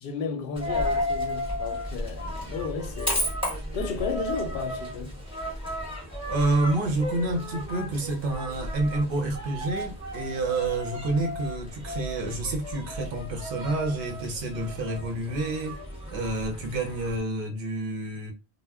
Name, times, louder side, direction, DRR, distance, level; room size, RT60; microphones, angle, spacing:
voice 1, 0.0-5.2, left 5 dB, 65° left, 0.7 m, -34 dB
Coin (dropping), 0.6-17.2, equal, 5° right, 0.9 m, -33 dB
voice 2, 6.3-15.8 16.1-18.3, right 2 dB, 60° right, 0.8 m, -28 dB
2.2 x 2.0 x 3.3 m
omnidirectional pair, 1.1 m